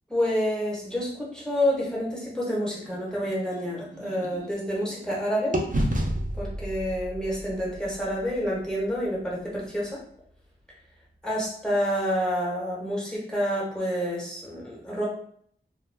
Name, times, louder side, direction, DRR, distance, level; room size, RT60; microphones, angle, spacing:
voice 1, 0.1-5.6 6.4-10.0 11.2-15.1, equal, 5° left, -5 dB, 1.1 m, -28 dB
sound 1, 2.8-5.2 5.5-9.5, right 1 dB, 40° right, 0.6 m, -32 dB
2.3 x 2.2 x 3.3 m, 0.64 s
wide cardioid pair, 45°, 21 cm